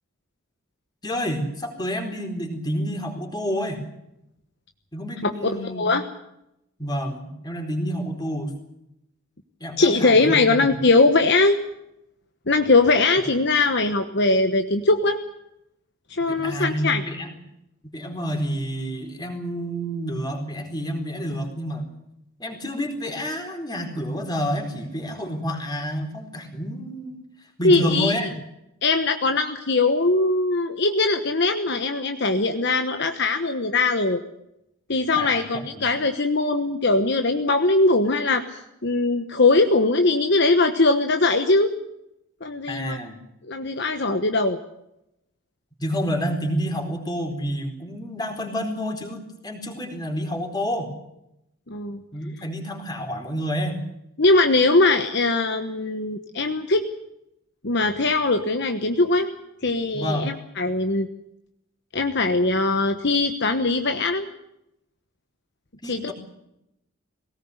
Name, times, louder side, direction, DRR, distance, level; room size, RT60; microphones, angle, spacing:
voice 1, 1.0-3.8 4.9-5.9 6.8-8.5 9.6-10.8 16.3-17.3 17.8-21.9 22.4-27.2 27.6-28.3 35.1-35.4 35.8-35.9 42.7-43.2 45.8-50.9 52.1-53.8 59.9-60.3 65.8-66.1, equal, 20° left, 3 dB, 4.2 m, -29 dB
voice 2, 5.6-6.0 9.8-11.6 12.5-15.2 16.1-17.0 27.6-28.1 28.8-34.2 34.9-41.7 42.4-43.0 43.4-44.6 51.7-52.0 54.2-56.8 57.6-59.3 59.6-61.1 61.9-64.3 65.8-66.1, left 3 dB, 55° left, 6 dB, 1.2 m, -21 dB
20.5 x 18.5 x 8.1 m, 0.83 s
head